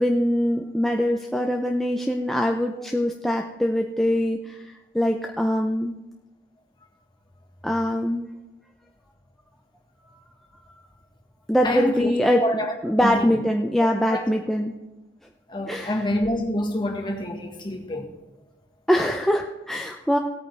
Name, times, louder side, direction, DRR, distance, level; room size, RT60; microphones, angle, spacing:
voice 1, 0.0-5.9 7.6-8.3 11.5-12.4 12.8-14.7 15.7-16.0 18.9-20.2, equal, ahead, 0.5 m, -23 dB
voice 2, 11.6-12.7 13.0-13.4 14.1-14.2 15.5-18.1, left 1 dB, 25° left, 1.4 m, -27 dB
17.5 x 8.8 x 3.3 m
head